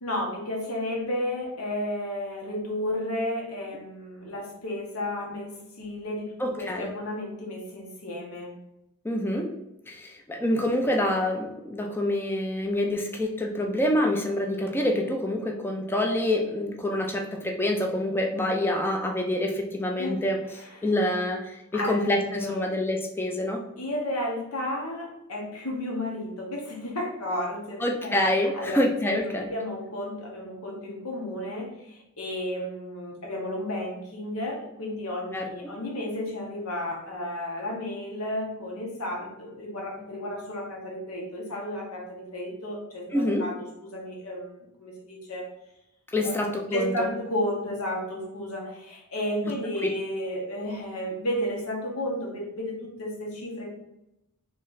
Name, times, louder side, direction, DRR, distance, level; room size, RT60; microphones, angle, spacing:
voice 1, 0.0-8.5 20.0-20.2 20.5-20.9 21.7-22.6 23.8-28.1 28.5-28.8 29.2-45.5 46.2-46.4 46.7-53.7, left 1 dB, 85° left, 0 dB, 1.1 m, -33 dB
voice 2, 6.4-6.9 9.0-9.5 9.9-20.4 20.8-23.6 27.8-29.5 35.3-35.7 43.1-43.4 46.1-47.1, left 1 dB, 10° left, 2 dB, 0.4 m, -26 dB
3.2 x 3.1 x 3.9 m, 0.89 s
head